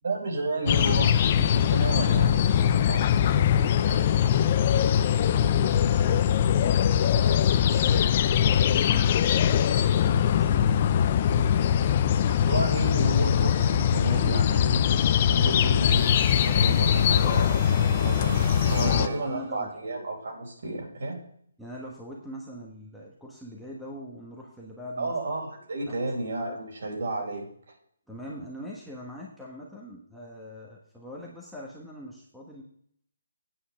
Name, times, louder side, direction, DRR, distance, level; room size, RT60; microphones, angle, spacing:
voice 1, 0.0-4.1 7.7-8.0 12.5-21.2 25.0-27.4, right 2 dB, 60° right, 0 dB, 4.4 m, -32 dB
sound 1, 0.7-19.1, left 9 dB, 30° left, 0.5 m, -22 dB
voice 2, 4.8-6.3 7.0-7.9 8.4-12.0 14.1-14.3 15.4-15.6 18.8-19.8 21.6-25.1 25.8-26.1 26.4-26.6 27.2-27.3 28.1-32.6, equal, ahead, -5 dB, 1.2 m, -42 dB
sound 2, 15.8-19.7, right 2 dB, 25° right, 2.1 m, -39 dB
8.8 x 5.7 x 7.2 m, 0.65 s
hypercardioid pair, 165°, 0 cm